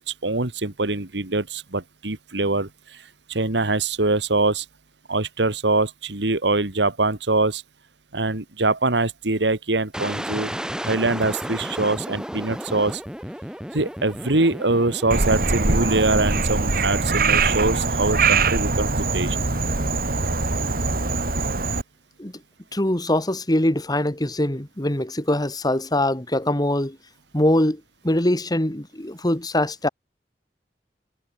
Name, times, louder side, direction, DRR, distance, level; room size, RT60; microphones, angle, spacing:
voice 1, 0.2-3.0 3.3-4.7 5.1-7.6 8.1-10.5 10.8-13.0 13.7-19.4, right 2 dB, 90° right, 2.1 m, -23 dB
sound 1, 9.9-17.8, equal, 5° right, 3.2 m, -33 dB
Frog, 15.1-21.8, right 3 dB, 55° right, 2.8 m, -22 dB
voice 2, 22.7-27.0 27.3-29.9, left 1 dB, 25° left, 2.4 m, -23 dB
head